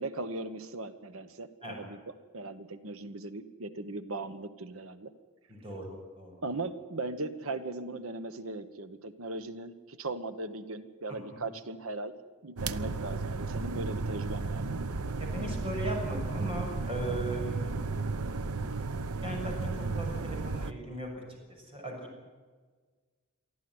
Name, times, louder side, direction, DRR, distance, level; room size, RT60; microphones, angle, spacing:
voice 1, 0.0-2.0 2.3-5.1 6.4-12.1 12.4-14.8, right 2 dB, 65° right, 11 dB, 1.2 m, -38 dB
voice 2, 5.5-6.4 11.1-11.4 15.2-17.9 19.2-22.0, right 1 dB, 25° right, 0 dB, 6.4 m, -38 dB
sound 1, 12.6-20.7, right 3 dB, 85° right, 0.8 m, -34 dB
23.5 x 14.5 x 9.6 m, 1.4 s
head